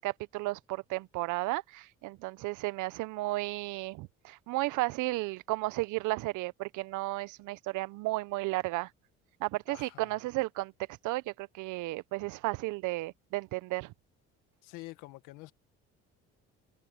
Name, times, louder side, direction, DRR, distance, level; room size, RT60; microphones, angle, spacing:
voice 1, 0.0-8.9 9.4-10.7 11.0-13.9, right 20 dB, 75° right, 0.7 m, -33 dB
voice 2, 9.7-10.2 14.6-15.5, left 20 dB, 90° left, 1.8 m, -47 dB
cardioid pair, 105°, 31 cm